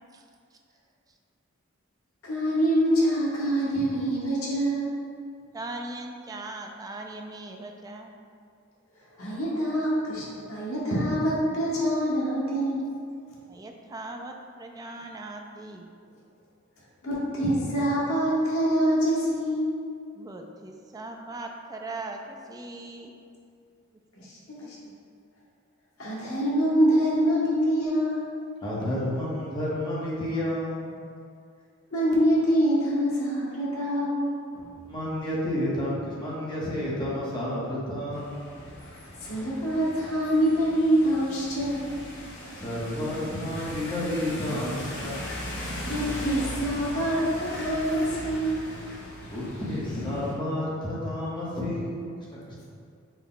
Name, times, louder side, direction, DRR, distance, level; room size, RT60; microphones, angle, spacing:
voice 1, 2.2-4.9 9.2-12.9 17.0-19.7 24.2-24.8 26.0-28.2 31.9-34.7 39.2-41.8 45.8-48.6, equal, 80° left, -6 dB, 1.1 m, -25 dB
voice 2, 5.5-8.1 13.5-15.9 20.2-23.1 24.6-24.7, right 2 dB, 15° right, 2 dB, 0.3 m, -39 dB
voice 3, 28.6-30.9 34.9-38.5 42.6-45.3 49.2-52.1 52.5-52.6, left 1 dB, 20° left, -7 dB, 0.9 m, -30 dB
sound 1, 38.1-50.3, equal, 55° left, 1.0 m, -39 dB
6.1 x 2.2 x 3.8 m, 2.3 s
head